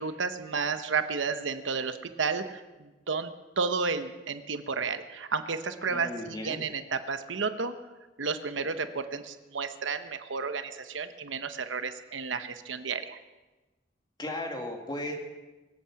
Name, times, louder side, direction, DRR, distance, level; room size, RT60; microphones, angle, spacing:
voice 1, 0.0-3.3 3.6-7.7 8.2-13.2, right 5 dB, 75° right, 10 dB, 0.9 m, -32 dB
voice 2, 5.9-6.7 14.2-15.1, left 1 dB, 25° left, 2 dB, 2.1 m, -36 dB
24.5 x 8.5 x 5.9 m, 1.2 s
head